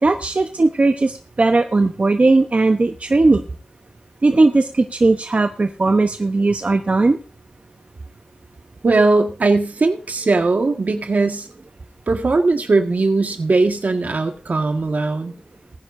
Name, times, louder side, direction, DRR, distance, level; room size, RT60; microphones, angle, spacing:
voice 1, 0.0-3.4 4.2-7.2, right 3 dB, 55° right, 6 dB, 1.0 m, -17 dB
voice 2, 8.8-11.5 12.1-15.3, right 3 dB, 80° right, 5 dB, 1.7 m, -19 dB
20.0 x 10.0 x 2.7 m, 0.34 s
wide cardioid pair, 70°, 3 cm